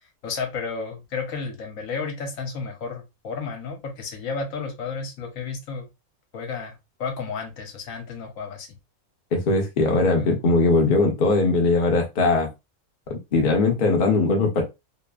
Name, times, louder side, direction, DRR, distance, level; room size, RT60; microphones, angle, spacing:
voice 1, 0.2-5.9 6.3-8.8 9.9-10.3, left 5 dB, 70° left, 1.1 m, -32 dB
voice 2, 9.3-12.5 13.1-14.6, left 3 dB, 50° left, 0.6 m, -20 dB
2.8 x 2.0 x 2.2 m
omnidirectional pair, 1.5 m